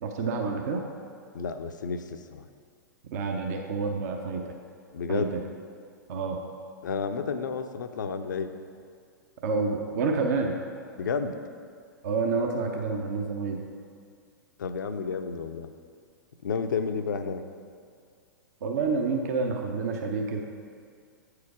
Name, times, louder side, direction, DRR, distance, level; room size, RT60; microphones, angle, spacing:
voice 1, 0.0-0.9 3.1-4.5 5.1-5.4 6.1-6.4 9.4-10.6 12.0-13.6 18.6-20.4, right 4 dB, 50° right, 2 dB, 0.7 m, -28 dB
voice 2, 1.3-2.5 4.9-5.3 6.8-8.5 11.0-11.3 14.6-15.7 16.4-17.4, left 5 dB, 65° left, 8 dB, 0.5 m, -31 dB
8.1 x 4.8 x 4.9 m, 2.3 s
figure-of-eight pair, 105°, 11 cm